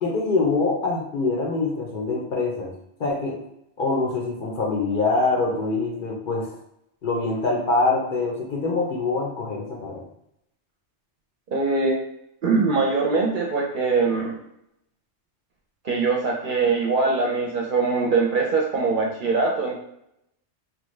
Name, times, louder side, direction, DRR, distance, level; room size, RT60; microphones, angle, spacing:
voice 1, 0.0-2.7 3.0-3.4 3.8-6.5 7.0-10.0, left 3 dB, 55° left, -1 dB, 0.7 m, -24 dB
voice 2, 11.5-12.0 12.4-14.4 15.8-19.8, right 4 dB, 60° right, -1 dB, 0.6 m, -22 dB
2.9 x 2.2 x 3.1 m, 0.78 s
omnidirectional pair, 1.2 m